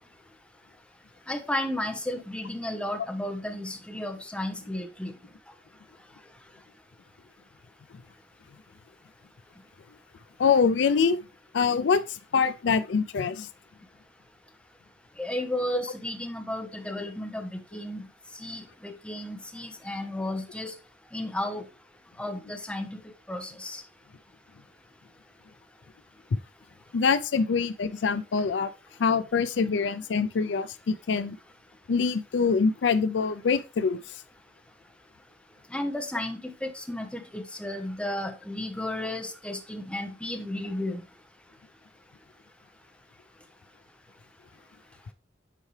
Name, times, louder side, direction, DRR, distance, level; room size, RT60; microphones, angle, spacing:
voice 1, 1.3-5.1 15.2-18.0 18.4-20.7 21.1-21.6 22.2-23.0 23.3-23.8 35.7-41.0, left 1 dB, 5° left, 1.0 m, -33 dB
voice 2, 10.4-11.2 11.5-13.5 26.3-26.4 26.9-28.7 29.0-31.4 31.9-34.2, left 5 dB, 70° left, 0.4 m, -25 dB
8.4 x 4.6 x 3.2 m
head